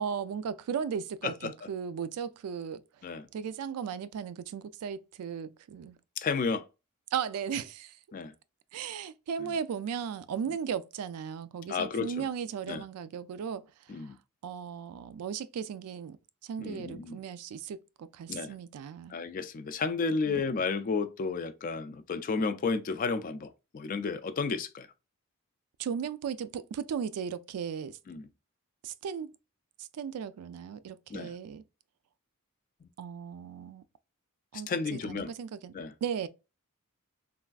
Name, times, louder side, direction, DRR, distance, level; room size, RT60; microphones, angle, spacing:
voice 1, 0.0-2.8 3.3-6.0 7.1-8.0 8.7-13.7 14.4-16.2 16.4-19.1 20.3-20.4 25.8-28.0 28.8-29.3 29.8-31.6 33.0-33.8 34.5-35.7 36.0-36.3, right 7 dB, 85° right, 0.3 m, -36 dB
voice 2, 6.2-6.6 8.1-8.3 11.7-12.2 12.7-12.8 13.9-14.2 16.6-17.2 18.3-18.5 19.1-24.9 28.1-28.3 31.1-31.3 32.8-32.9 34.7-35.3 35.7-35.9, left 4 dB, 40° left, 0.3 m, -32 dB
3.3 x 2.4 x 2.3 m
head